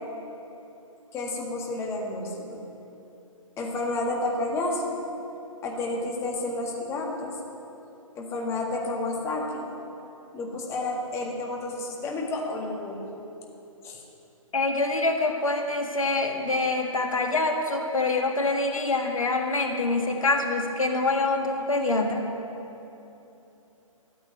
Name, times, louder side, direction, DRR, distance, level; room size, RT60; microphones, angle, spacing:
voice 1, 1.1-2.6 3.6-5.0 5.6-7.4 8.2-9.7 10.3-13.1 13.8-14.0, left 2 dB, 15° left, 0 dB, 1.8 m, -30 dB
voice 2, 14.5-22.2, left 2 dB, 75° left, 3 dB, 1.8 m, -25 dB
13.5 x 8.4 x 9.0 m, 2.9 s
figure-of-eight pair, 130°, 18 cm